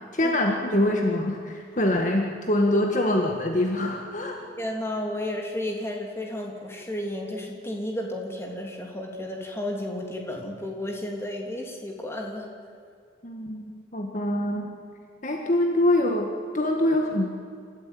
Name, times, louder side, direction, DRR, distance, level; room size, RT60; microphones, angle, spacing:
voice 1, 0.1-4.4 13.2-14.7 15.2-17.3, left 1 dB, 40° left, 2 dB, 1.7 m, -24 dB
voice 2, 4.6-12.5, left 1 dB, 15° left, 0 dB, 3.2 m, -32 dB
26.5 x 14.0 x 9.3 m, 2.4 s
head